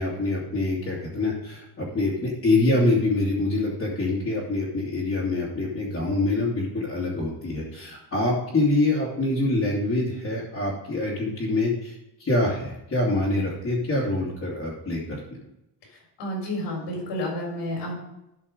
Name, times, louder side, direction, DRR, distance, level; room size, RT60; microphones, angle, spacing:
voice 1, 0.0-15.0, left 2 dB, 30° left, -6 dB, 2.6 m, -25 dB
voice 2, 15.9-17.9, left 1 dB, 75° left, 0 dB, 4.2 m, -31 dB
12.5 x 5.2 x 5.2 m, 0.87 s
cardioid pair, 135°, 43 cm